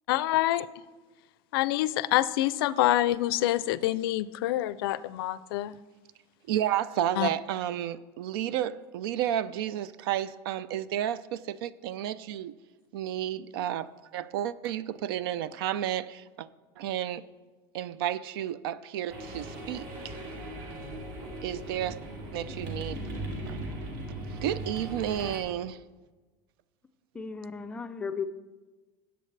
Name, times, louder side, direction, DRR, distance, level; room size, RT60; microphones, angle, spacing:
voice 1, 0.1-0.7 1.5-5.8 7.2-7.3, left 15 dB, 75° left, 0.4 m, -26 dB
voice 2, 6.5-12.5 12.9-16.5 16.8-17.3 17.7-20.2 21.4-22.0 22.3-23.0 23.5-23.6 24.4-25.8, right 11 dB, 80° right, 0.5 m, -32 dB
sound 1, 19.1-25.4, right 1 dB, 55° right, 2.3 m, -38 dB
voice 3, 27.1-28.3, left 5 dB, 10° left, 0.3 m, -35 dB
17.0 x 7.8 x 3.3 m
supercardioid pair, 175°, 12 cm